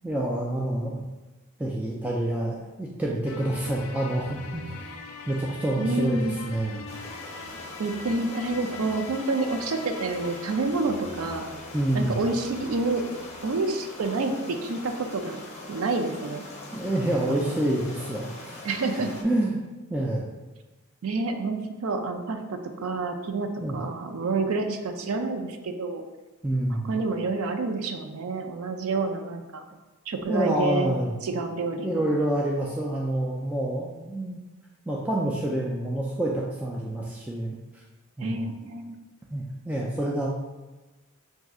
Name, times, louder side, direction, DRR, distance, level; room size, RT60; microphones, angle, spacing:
voice 1, 0.0-1.0 1.6-4.6 5.3-6.9 11.7-12.2 16.7-18.6 19.2-19.6 19.9-20.2 23.6-23.8 26.4-26.9 30.2-31.1 31.8-34.4 34.9-37.5 38.2-38.5 39.3-40.3, right 1 dB, 5° right, -4 dB, 0.3 m, -27 dB
sound 1, 3.2-14.6, left 3 dB, 75° left, 0.4 m, -42 dB
voice 2, 5.8-6.4 7.8-11.4 11.9-13.0 13.4-15.4 15.7-16.4 17.3-17.5 18.6-19.1 21.0-26.0 26.8-29.6 30.1-30.9 31.2-32.1 38.2-39.0, right 3 dB, 70° right, 6 dB, 0.4 m, -28 dB
sound 2, 6.9-19.2, left 2 dB, 30° left, 0.6 m, -42 dB
6.0 x 2.6 x 2.3 m, 1.2 s
head